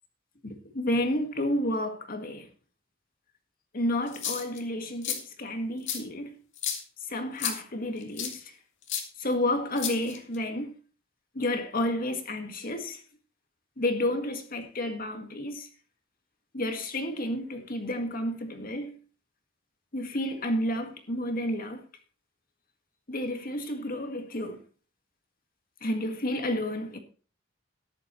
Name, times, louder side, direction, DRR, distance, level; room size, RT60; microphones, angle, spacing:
voice 1, 0.4-2.5 3.7-6.3 7.1-8.5 9.2-10.7 11.4-13.0 13.8-15.7 16.5-19.0 19.9-21.8 23.1-24.6 25.8-27.0, left 1 dB, 50° left, 1.9 m, -31 dB
sound 1, 4.1-4.6 5.0-5.2 5.9-6.0 6.6-6.8 7.4-7.6 8.2-8.4 8.9-9.0 9.8-10.4, left 8 dB, 65° left, 2.2 m, -32 dB
13.5 x 10.5 x 3.1 m
head